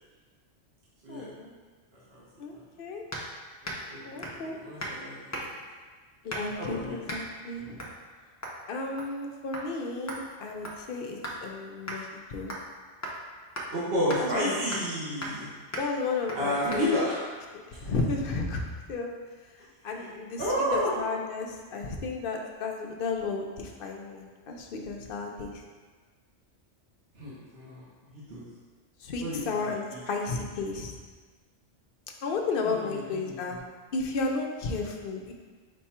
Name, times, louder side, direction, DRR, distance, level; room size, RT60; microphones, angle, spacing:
voice 1, 1.1-1.5 2.4-3.0 4.0-4.6 6.2-7.8 8.7-12.5 14.2-14.6 15.7-17.0 17.7-18.6 18.9-19.1 19.8-20.4 20.7-25.5 29.0-30.9 32.2-33.6 33.9-35.3, left 3 dB, 60° left, 1 dB, 0.6 m, -33 dB
sound 1, 3.1-3.3 3.6-3.9 4.2-4.4 4.8-5.0 5.3-5.7 6.3-6.6 7.1-7.2 7.8-8.0 8.4-8.6 9.0-9.2 9.5-9.7 10.1-11.4 11.9-12.0 12.5-12.7 13.0-13.2 13.5-13.7 14.1-14.2 14.7-14.9 15.2-15.4 15.7-15.9 16.3-16.4 16.7-16.8, equal, 30° left, 0.3 m, -37 dB
voice 2, 3.6-4.2 4.5-5.4 6.6-7.0 13.7-15.5 16.3-17.2 19.9-20.1 20.4-20.9 27.1-27.9 28.1-28.5 29.2-30.0 32.6-33.6, equal, 55° right, -8 dB, 1.2 m, -31 dB
5.2 x 2.3 x 4.2 m, 1.4 s
omnidirectional pair, 1.2 m